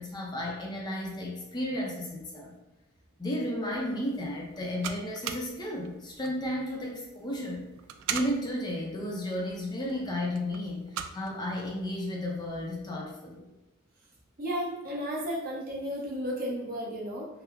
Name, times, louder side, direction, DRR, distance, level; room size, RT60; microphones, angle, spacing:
voice 1, 0.0-2.5 3.2-7.6 8.1-13.4, left 1 dB, 20° left, -1 dB, 0.5 m, -33 dB
sound 1, 3.6-12.8, right 8 dB, 75° right, 0.3 m, -43 dB
voice 2, 14.4-17.3, equal, 45° right, -4 dB, 0.9 m, -33 dB
5.6 x 2.0 x 2.4 m, 1.0 s
head